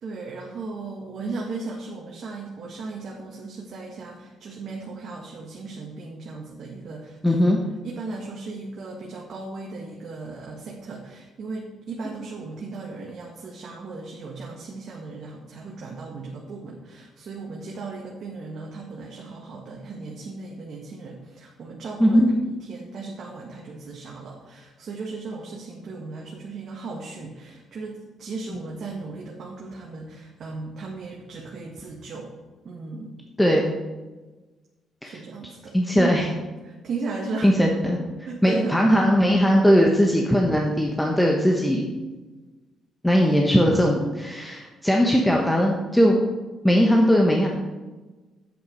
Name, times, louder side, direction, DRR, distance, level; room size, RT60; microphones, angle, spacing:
voice 1, 0.0-7.5 7.8-22.2 22.7-32.3 32.6-33.1 35.0-36.2 36.6-37.5 38.3-38.9, right 3 dB, 60° right, -2 dB, 1.7 m, -36 dB
voice 2, 7.2-7.6 22.0-22.3 33.4-33.7 35.0-35.2 35.7-36.2 37.4-38.0 38.4-41.9 43.0-46.2 46.6-47.5, equal, 5° left, 0 dB, 1.2 m, -19 dB
8.4 x 7.7 x 5.3 m, 1.2 s
cardioid pair, 90°, 0 cm